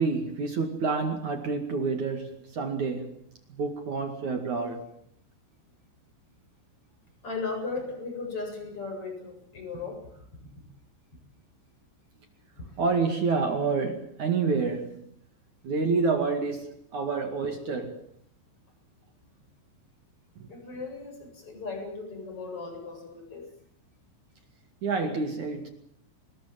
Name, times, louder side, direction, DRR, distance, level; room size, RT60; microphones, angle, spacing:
voice 1, 0.0-3.1 3.6-4.9 12.8-15.1 15.6-18.0 20.4-20.5 24.8-25.7, right 4 dB, 50° right, 2.8 m, -28 dB
voice 2, 7.2-10.2 10.6-10.7 12.6-12.8 20.5-23.5, left 4 dB, 25° left, 8.6 m, -37 dB
25.0 x 20.5 x 7.5 m
omnidirectional pair, 5.6 m